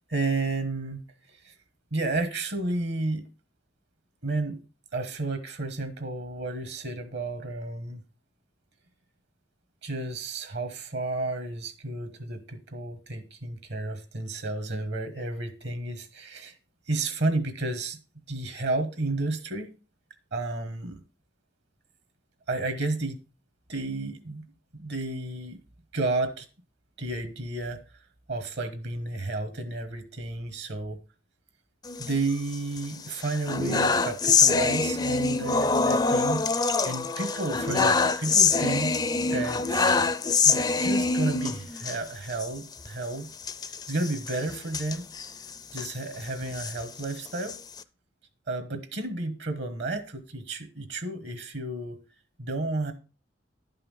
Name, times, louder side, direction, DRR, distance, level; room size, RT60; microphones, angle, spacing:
voice 1, 0.1-1.0 1.3-1.5 1.9-3.2 4.2-4.6 4.9-8.0 9.8-16.5 16.9-18.0 18.3-19.7 20.3-21.0 22.5-23.2 23.7-24.4 24.7-25.6 25.9-26.4 27.0-27.9 28.3-31.0 32.0-38.9 39.3-39.9 40.4-43.3 43.9-45.0 45.7-47.6 48.5-52.0 52.4-52.9, right 2 dB, 65° right, 1.4 m, -32 dB
sound 1, 31.9-32.8 33.2-42.0 42.3-42.5 42.7-42.9 43.4-45.9 46.4-47.8, left 4 dB, 20° left, 0.4 m, -25 dB
11.0 x 5.6 x 5.5 m
head